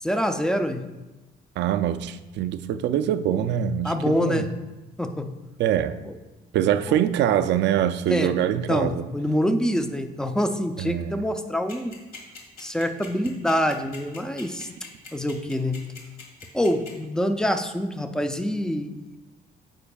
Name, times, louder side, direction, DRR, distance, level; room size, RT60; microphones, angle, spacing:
voice 1, 0.0-0.8 3.4-3.5 3.8-4.5 5.0-5.3 6.0-6.2 6.9-7.0 8.1-8.4 8.7-12.0 12.6-14.7 15.1-15.8 16.5-19.2, equal, 5° left, 0.4 m, -26 dB
voice 2, 1.6-4.5 5.6-5.9 6.5-9.1 10.8-11.2, right 10 dB, 85° right, 0.4 m, -24 dB
sound 1, 11.7-16.9, left 5 dB, 60° left, 2.0 m, -42 dB
15.0 x 5.3 x 2.3 m
cardioid pair, 145°, 18 cm